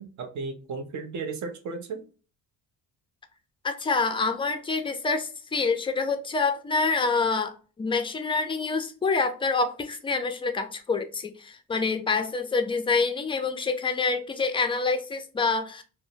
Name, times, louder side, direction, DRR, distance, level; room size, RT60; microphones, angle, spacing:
voice 1, 0.0-2.1, right 4 dB, 55° right, 5 dB, 0.6 m, -35 dB
voice 2, 3.6-15.8, left 4 dB, 15° left, 7 dB, 0.3 m, -27 dB
2.5 x 2.0 x 2.7 m, 0.37 s
cardioid pair, 100°, 36 cm